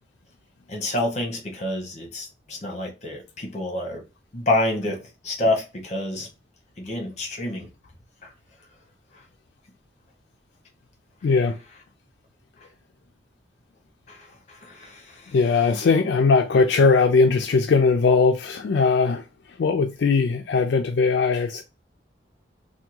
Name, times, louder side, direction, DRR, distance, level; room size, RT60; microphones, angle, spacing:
voice 1, 0.7-4.0 4.3-6.3 6.8-7.7 8.2-8.3 14.1-15.4, left 1 dB, 40° left, 0.9 m, -28 dB
voice 2, 11.2-11.6 15.3-19.2 19.6-21.6, left 4 dB, 65° left, 0.3 m, -19 dB
3.4 x 2.2 x 2.9 m
head